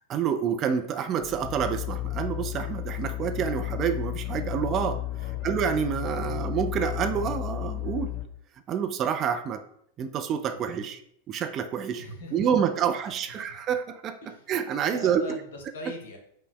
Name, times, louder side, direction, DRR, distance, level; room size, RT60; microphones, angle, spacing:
voice 1, 0.1-5.0 5.4-8.1 8.7-9.6 10.0-11.0 11.3-12.0 12.3-14.2 14.5-15.4, right 8 dB, 30° right, 8 dB, 0.3 m, -28 dB
sound 1, 1.2-8.3, left 16 dB, 40° left, 0.4 m, -33 dB
voice 2, 5.1-5.5 10.5-10.9 11.9-12.7 13.4-13.5 14.2-14.5 14.8-16.2, left 1 dB, 60° left, 2 dB, 1.0 m, -42 dB
5.2 x 2.1 x 4.6 m, 0.71 s
figure-of-eight pair, 90°, 0 cm